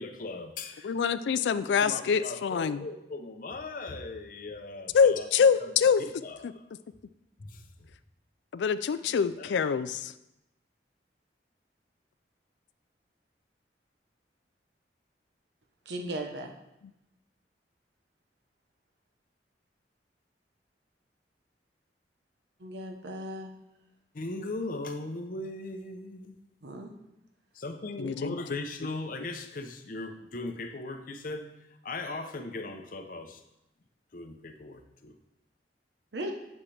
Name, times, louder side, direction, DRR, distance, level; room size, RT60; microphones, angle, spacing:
voice 1, 0.0-0.9 1.8-5.3 5.6-5.7 6.0-6.5 7.4-7.7 9.2-9.7 24.1-26.4 27.5-31.5 31.8-33.4 34.1-35.1, left 2 dB, 50° left, 6 dB, 0.7 m, -38 dB
voice 2, 0.8-2.8 4.9-6.0 8.5-10.1 28.0-28.9, left 6 dB, 75° left, 14 dB, 0.3 m, -25 dB
voice 3, 15.9-16.5 22.6-23.5 26.6-26.9 36.1-36.3, right 1 dB, 70° right, 3 dB, 0.9 m, -37 dB
8.4 x 7.2 x 3.3 m, 0.88 s
head